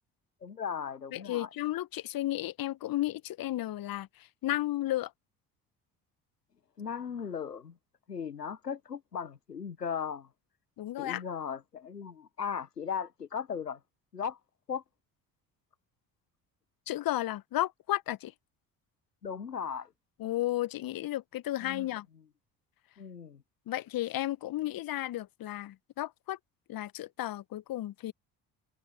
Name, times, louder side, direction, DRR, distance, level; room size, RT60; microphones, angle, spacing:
voice 1, 0.4-1.5 6.8-7.7 8.1-10.3 11.0-13.8 14.1-14.4 14.7-14.8 19.2-19.9 21.6-21.9 23.0-23.4, left 7 dB, 85° left, 1.2 m, -37 dB
voice 2, 1.1-4.1 4.4-5.1 10.8-11.2 16.9-18.3 20.2-22.0 23.7-26.4 26.7-28.1, left 14 dB, 45° left, 1.5 m, -33 dB
figure-of-eight pair, 50°, 46 cm